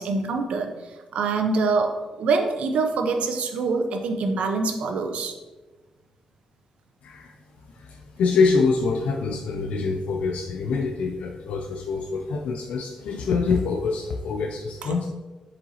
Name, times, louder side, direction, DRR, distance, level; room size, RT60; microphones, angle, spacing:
voice 1, 0.0-5.3 14.8-14.9, right 4 dB, 85° right, 6 dB, 0.5 m, -25 dB
voice 2, 7.0-7.3 7.7-15.1, left 4 dB, 85° left, 3 dB, 0.3 m, -25 dB
4.9 x 3.9 x 2.8 m, 1.2 s
cardioid pair, 100°, 2 cm